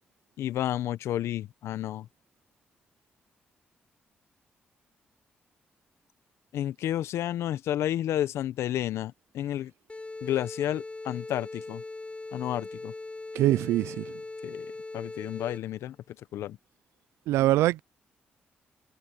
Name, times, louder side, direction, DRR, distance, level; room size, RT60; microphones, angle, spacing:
voice 1, 0.4-2.1 6.5-9.7 10.2-11.8 12.3-12.9 14.4-14.7 14.9-16.6, left 12 dB, 75° left, 0.9 m, -31 dB
sound 1, 9.9-15.8, left 2 dB, 25° left, 5.6 m, -40 dB
voice 2, 13.3-14.0 17.3-17.8, right 15 dB, 85° right, 0.5 m, -23 dB
supercardioid pair, 50°, 5 cm